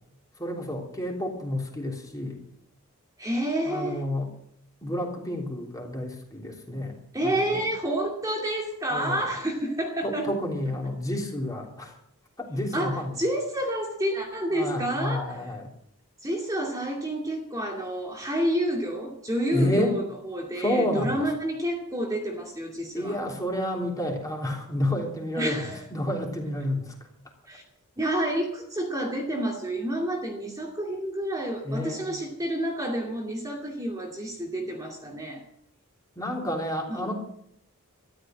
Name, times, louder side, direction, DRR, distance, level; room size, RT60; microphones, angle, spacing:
voice 1, 0.4-2.4 3.7-4.3 4.8-7.0 7.2-7.6 8.9-9.2 10.0-12.0 12.4-13.1 14.5-15.6 19.5-20.0 20.6-21.2 22.9-25.6 25.9-26.9 31.6-32.1 36.1-37.1, left 1 dB, 15° left, 0 dB, 3.3 m, -30 dB
voice 2, 3.2-4.1 7.1-10.3 12.7-15.5 16.2-23.2 25.4-25.8 27.5-27.6 28.0-35.4 36.9-37.1, right 1 dB, 15° right, -1 dB, 2.4 m, -29 dB
14.0 x 11.5 x 7.7 m, 0.69 s
head